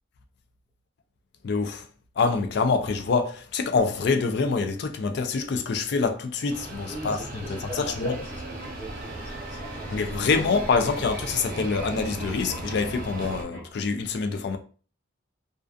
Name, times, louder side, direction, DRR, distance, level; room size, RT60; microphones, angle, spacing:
voice 1, 1.4-1.9 2.2-7.2 7.5-8.2 9.9-14.6, left 4 dB, 60° left, 0.4 m, -26 dB
sound 1, 6.5-13.4, right 2 dB, 50° right, 0.6 m, -37 dB
voice 2, 6.8-10.4 10.8-10.9, equal, 10° left, 0.7 m, -41 dB
sound 2, 8.1-13.7, equal, 85° left, 1.1 m, -45 dB
2.4 x 2.2 x 2.4 m
head